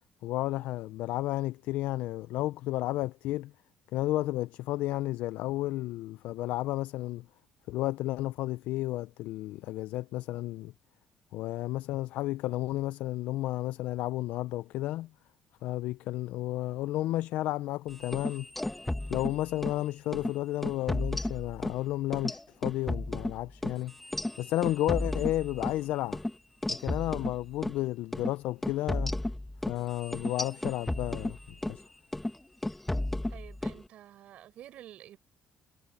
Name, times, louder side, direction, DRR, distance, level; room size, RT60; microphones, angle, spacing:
voice 1, 0.2-3.5 3.9-7.3 7.7-10.7 11.3-15.1 15.6-18.5 19.1-23.9 24.4-26.2 26.7-29.1 29.7-31.8, left 16 dB, 85° left, 0.3 m, -32 dB
sound 1, 18.0-19.8 20.1-20.3 20.6-21.8 22.1-25.8 26.1-26.3 26.6-27.8 28.1-28.3 28.6-31.8 32.1-32.4 32.6-33.8, left 1 dB, 5° left, 1.4 m, -33 dB
voice 2, 33.3-35.2, right 12 dB, 60° right, 5.6 m, -49 dB
cardioid pair, 165°, 3 cm